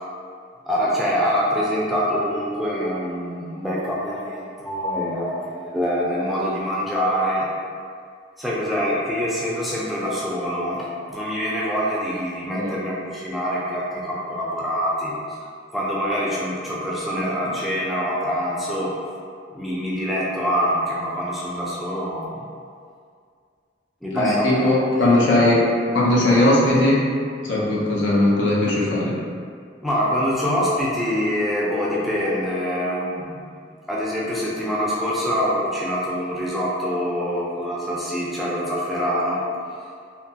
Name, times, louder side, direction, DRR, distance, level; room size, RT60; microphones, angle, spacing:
voice 1, 0.7-7.5 8.4-15.2 15.7-19.0 19.5-22.5 24.0-24.8 29.8-33.5 33.9-39.4 39.7-39.8, equal, ahead, -7 dB, 0.3 m, -25 dB
voice 2, 24.1-25.7 25.9-27.0 27.4-29.1, left 1 dB, 80° left, -5 dB, 0.6 m, -18 dB
2.7 x 2.2 x 2.7 m, 2.2 s
head